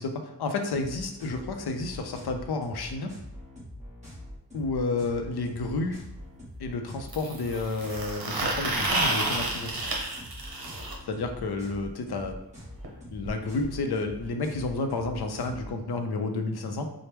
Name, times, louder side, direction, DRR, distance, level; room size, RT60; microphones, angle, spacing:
voice 1, 0.0-3.1 4.5-6.0 6.6-9.7 11.1-12.4 13.1-16.8, left 3 dB, 65° left, 5 dB, 0.5 m, -31 dB
sound 1, 0.7-15.7, left 1 dB, 15° right, 1.3 m, -44 dB
sound 2, 5.1-5.2 7.1-10.9 12.8-12.9 13.2-13.3 13.6-13.7 14.7-14.8, right 2 dB, 60° right, 0.8 m, -30 dB
4.4 x 2.1 x 3.3 m, 0.87 s
wide cardioid pair, 135°, 41 cm